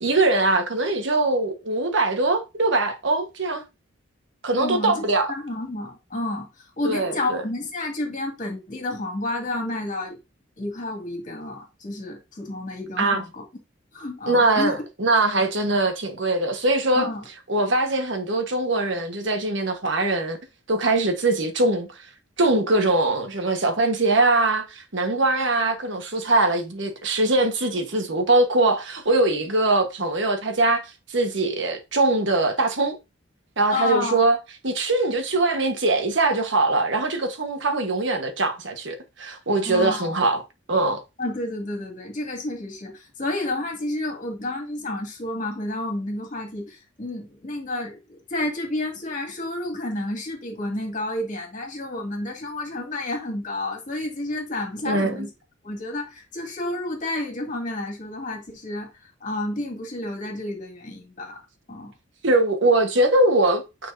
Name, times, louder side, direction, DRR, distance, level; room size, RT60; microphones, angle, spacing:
voice 1, 0.0-3.6 4.4-5.3 6.8-7.4 13.0-13.2 14.3-17.1 17.5-20.4 20.7-22.1 22.4-30.8 31.1-33.0 33.6-34.4 34.6-40.4 40.7-41.0 54.8-55.3 62.2-63.9, right 2 dB, 65° right, 1.3 m, -22 dB
voice 2, 4.6-5.0 5.3-10.2 10.6-13.4 13.9-14.7 16.9-17.3 33.7-34.2 39.6-40.1 41.2-48.0 48.3-55.3 55.6-61.4 61.7-61.9, left 2 dB, 40° left, 2.4 m, -30 dB
9.6 x 4.5 x 2.7 m
head